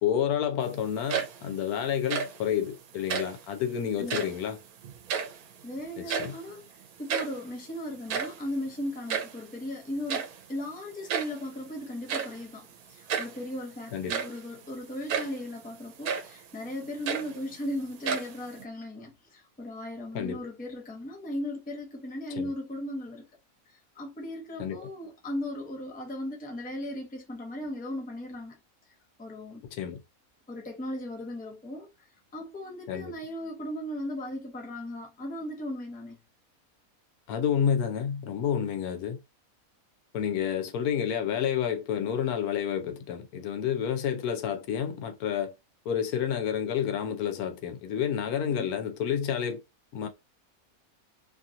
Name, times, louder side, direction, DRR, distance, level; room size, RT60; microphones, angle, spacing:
voice 1, 0.0-4.6 6.0-6.3 13.9-14.1 20.1-20.4 22.4-22.5 24.6-24.8 29.7-30.0 32.9-33.1 37.3-39.2 40.1-45.5 45.9-49.6 49.9-50.1, left 8 dB, 85° left, 1.1 m, -29 dB
sound 1, 0.9-1.6 1.9-2.5 3.0-3.4 4.0-4.5 4.8-5.7 5.9-6.5 6.8-6.9 7.1-7.4 7.9-9.4 10.1-10.4 11.1-11.5 12.1-12.4 13.1-13.4 13.9-14.5 15.1-15.4 16.0-16.4 16.8-17.7 18.0-18.6, right 7 dB, 85° right, 1.1 m, -32 dB
voice 2, 5.6-23.3 23.7-28.6 29.2-29.6 30.5-32.1 32.3-36.2 48.5-48.7, left 1 dB, 10° left, 0.4 m, -37 dB
2.9 x 2.8 x 2.4 m
omnidirectional pair, 1.5 m